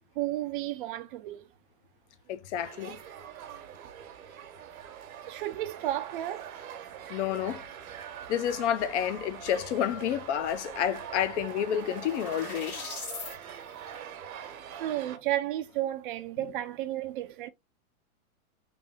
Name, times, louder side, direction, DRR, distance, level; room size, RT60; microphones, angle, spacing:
voice 1, 0.2-1.5 5.3-6.5 14.7-17.5, right 14 dB, 40° right, 0.4 m, -32 dB
voice 2, 2.3-3.0 7.1-7.6 8.3-12.9, left 10 dB, 55° left, 0.6 m, -30 dB
sound 1, 2.6-15.2, right 9 dB, 75° right, 1.0 m, -43 dB
sound 2, 10.8-13.4, left 4 dB, 90° left, 1.8 m, -42 dB
3.4 x 2.6 x 3.5 m
hypercardioid pair, 130°, 42 cm